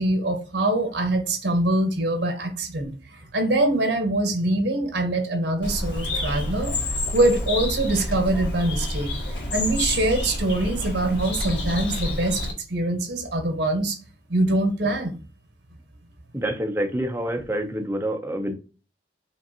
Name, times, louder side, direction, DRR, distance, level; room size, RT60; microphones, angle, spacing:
voice 1, 0.0-6.7 7.1-9.1 9.5-14.0 14.3-15.2, right 1 dB, 75° right, 1.1 m, -24 dB
Bird, 5.6-12.5, left 1 dB, 90° left, 1.6 m, -28 dB
voice 2, 16.3-18.5, right 1 dB, 15° right, 0.6 m, -27 dB
5.2 x 2.5 x 2.7 m
head